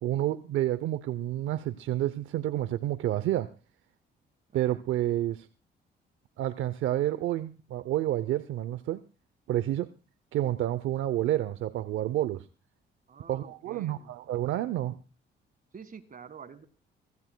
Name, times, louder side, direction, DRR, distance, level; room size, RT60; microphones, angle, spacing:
voice 1, 0.0-3.5 4.5-5.5 6.4-9.0 9.5-9.9 10.3-12.4 13.3-15.0, right 13 dB, 80° right, 13 dB, 0.6 m, -29 dB
voice 2, 4.5-4.8 13.1-14.1 15.7-16.6, right 6 dB, 45° right, 12 dB, 1.7 m, -48 dB
24.5 x 16.0 x 2.2 m, 0.33 s
cardioid pair, 90°, 20 cm